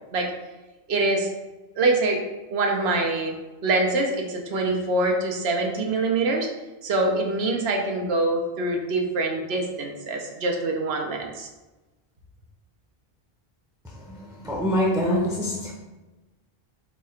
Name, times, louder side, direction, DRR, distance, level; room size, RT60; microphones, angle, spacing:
voice 1, 0.9-1.3 1.8-2.2 2.5-3.4 3.6-6.5 6.8-11.5, right 2 dB, 85° right, 1 dB, 0.9 m, -24 dB
voice 2, 14.4-15.7, equal, 5° right, -3 dB, 0.5 m, -24 dB
4.2 x 2.4 x 4.2 m, 1.1 s
omnidirectional pair, 1.0 m